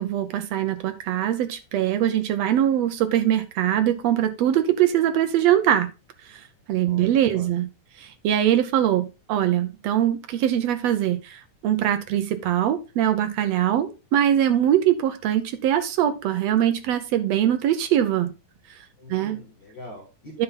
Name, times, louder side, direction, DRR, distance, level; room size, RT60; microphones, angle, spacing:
voice 1, 0.0-5.9 6.3-7.7 8.0-18.3 19.1-19.4 20.3-20.4, right 11 dB, 75° right, 9 dB, 1.5 m, -22 dB
voice 2, 6.8-7.5 19.0-20.4, left 1 dB, 40° left, -1 dB, 2.5 m, -43 dB
9.8 x 5.6 x 3.8 m, 0.28 s
omnidirectional pair, 3.8 m